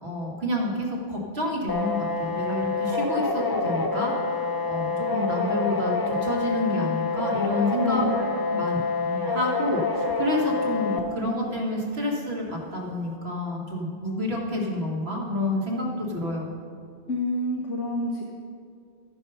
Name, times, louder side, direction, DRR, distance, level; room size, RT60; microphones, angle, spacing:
voice 1, 0.0-16.5, left 1 dB, 65° right, -3 dB, 2.1 m, -29 dB
sound 1, 1.7-11.0, left 3 dB, 25° left, 0.6 m, -27 dB
voice 2, 7.8-8.1 8.5-8.7 17.1-18.3, left 2 dB, 85° left, 0 dB, 1.1 m, -28 dB
13.5 x 5.7 x 5.5 m, 2.3 s
omnidirectional pair, 1.1 m